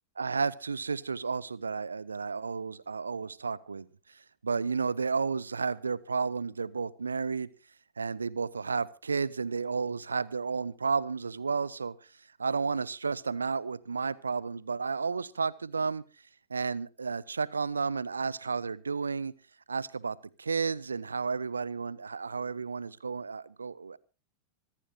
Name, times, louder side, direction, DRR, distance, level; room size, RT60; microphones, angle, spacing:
voice 1, 0.2-7.5 8.0-11.9 12.4-16.0 16.5-19.3 19.7-24.0, right 5 dB, 75° right, 23 dB, 0.7 m, -32 dB
25.0 x 14.5 x 2.8 m, 0.33 s
figure-of-eight pair, 90°, 0 cm